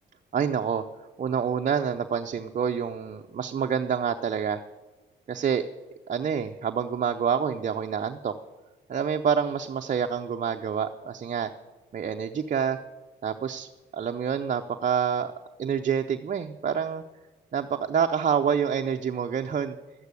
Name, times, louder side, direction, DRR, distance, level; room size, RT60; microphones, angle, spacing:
voice 1, 0.3-0.8 1.2-4.6 5.3-5.6 6.1-8.3 8.9-11.5 11.9-12.8 13.2-15.3 15.6-17.0 17.5-19.8, right 7 dB, 40° right, 5 dB, 0.7 m, -27 dB
12.5 x 8.3 x 8.2 m, 1.2 s
cardioid pair, 90°, 20 cm